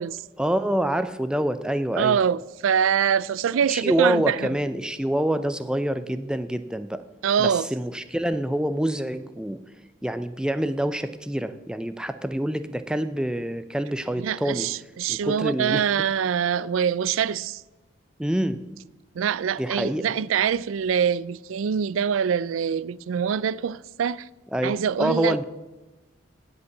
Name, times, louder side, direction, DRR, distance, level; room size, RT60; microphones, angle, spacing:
voice 1, 0.4-2.2 3.7-7.0 7.4-9.6 10.0-14.7 15.1-15.9 18.2-18.6 19.6-20.1 24.5-25.4, right 1 dB, 5° right, 0.4 m, -26 dB
voice 2, 2.0-4.6 7.2-7.7 14.2-17.6 19.1-24.3 24.6-25.4, right 7 dB, 90° right, 0.4 m, -24 dB
16.0 x 5.4 x 7.1 m
head